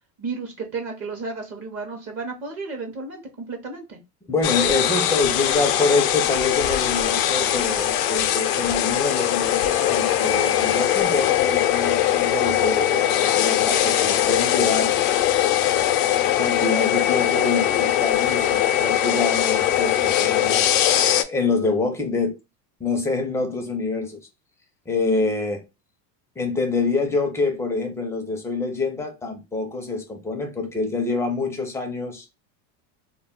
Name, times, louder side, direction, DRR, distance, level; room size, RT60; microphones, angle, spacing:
voice 1, 0.2-4.0, right 4 dB, 35° right, 0.7 m, -33 dB
voice 2, 4.3-15.3 16.4-20.8 21.3-22.3 22.8-24.2 24.9-25.6 26.4-32.3, left 3 dB, 5° left, 0.4 m, -26 dB
sound 1, 4.4-21.2, left 11 dB, 85° left, 0.6 m, -21 dB
2.3 x 2.1 x 3.6 m
supercardioid pair, 125°, 46 cm